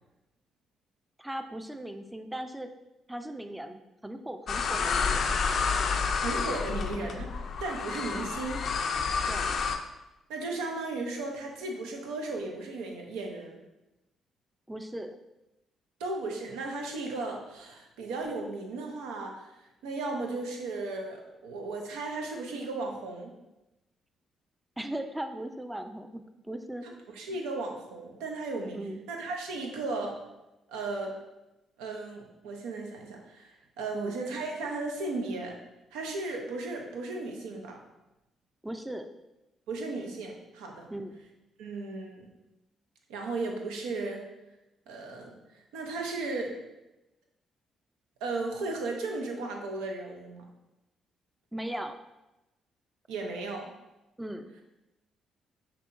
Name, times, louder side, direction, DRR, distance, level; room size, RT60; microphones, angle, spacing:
voice 1, 1.2-2.7 3.1-5.4 9.3-9.6 14.7-15.2 24.8-26.9 28.7-29.0 33.9-34.2 38.6-39.1 40.9-41.2 51.5-52.0 54.2-54.5, right 1 dB, 10° right, 8 dB, 0.4 m, -38 dB
sound 1, 4.5-9.8, left 5 dB, 60° left, 0.4 m, -29 dB
voice 2, 6.2-7.3 7.6-8.6 10.3-13.6 16.0-23.3 26.8-30.2 30.7-31.2 31.8-35.6 35.9-37.8 39.7-40.9 41.6-42.3 43.1-44.3 44.9-46.6 48.2-50.5 53.1-53.7, right 3 dB, 90° right, 2 dB, 0.6 m, -35 dB
5.4 x 2.9 x 2.5 m, 0.98 s
supercardioid pair, 60°, 0 cm